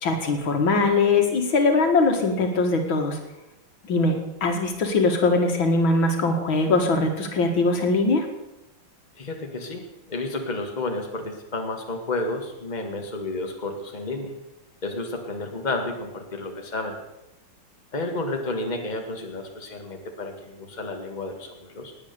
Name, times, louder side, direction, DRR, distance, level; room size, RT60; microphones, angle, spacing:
voice 1, 0.0-3.2 3.9-8.3, left 3 dB, 85° left, 4 dB, 2.8 m, -21 dB
voice 2, 9.2-14.3 14.8-17.0 17.9-21.9, left 2 dB, 20° left, 3 dB, 2.0 m, -31 dB
19.0 x 9.2 x 6.9 m, 0.93 s
omnidirectional pair, 2.1 m